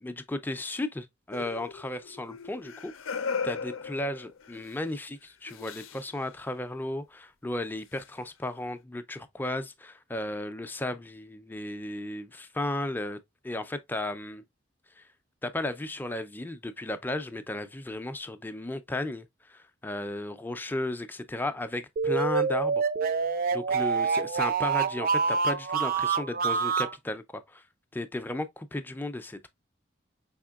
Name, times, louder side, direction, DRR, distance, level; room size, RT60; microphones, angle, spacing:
voice 1, 0.0-13.2 13.4-14.4 15.0-15.1 15.4-22.9 23.5-27.6 27.9-29.5, left 1 dB, 10° left, 0.4 m, -34 dB
sound 1, 1.3-4.7 5.5-6.1 8.0-8.1, left 5 dB, 85° left, 0.6 m, -37 dB
sound 2, 22.0-26.9, right 5 dB, 45° right, 0.4 m, -26 dB
5.1 x 3.6 x 2.3 m
head